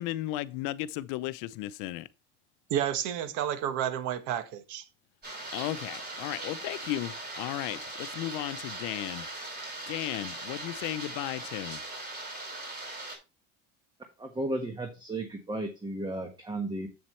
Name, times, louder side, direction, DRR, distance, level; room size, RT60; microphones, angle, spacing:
voice 1, 0.0-2.1 5.5-9.3 9.9-11.8, left 15 dB, 80° left, 0.7 m, -35 dB
voice 2, 2.7-4.8, right 10 dB, 75° right, 1.3 m, -30 dB
sound 1, 5.2-13.2, right 2 dB, 30° right, 5.0 m, -40 dB
voice 3, 14.2-16.9, right 1 dB, 15° right, 1.3 m, -34 dB
8.0 x 7.2 x 3.2 m
cardioid pair, 125°, 30 cm